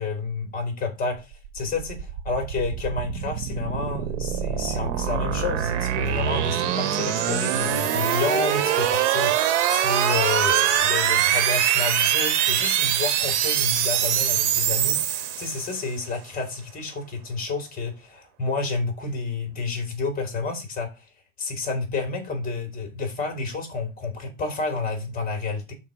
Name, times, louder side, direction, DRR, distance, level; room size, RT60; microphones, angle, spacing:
voice 1, 0.0-20.9 21.4-25.7, left 4 dB, 25° left, 2.9 m, -30 dB
sound 1, 1.3-15.9, right 10 dB, 70° right, 1.3 m, -24 dB
5.6 x 4.7 x 6.2 m
supercardioid pair, 130°, 35 cm